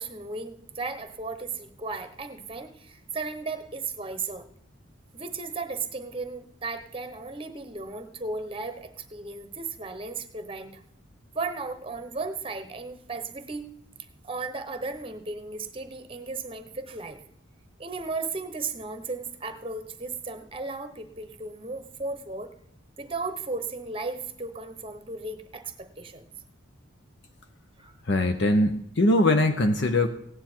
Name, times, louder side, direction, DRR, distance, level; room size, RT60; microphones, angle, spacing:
voice 1, 0.0-4.5 5.1-10.7 11.3-13.7 14.2-17.2 17.8-22.5 23.0-26.2 27.8-27.9, right 3 dB, 25° right, 9 dB, 0.9 m, -35 dB
voice 2, 28.0-30.1, left 1 dB, 55° left, 6 dB, 0.7 m, -22 dB
16.0 x 9.6 x 4.5 m, 0.70 s
head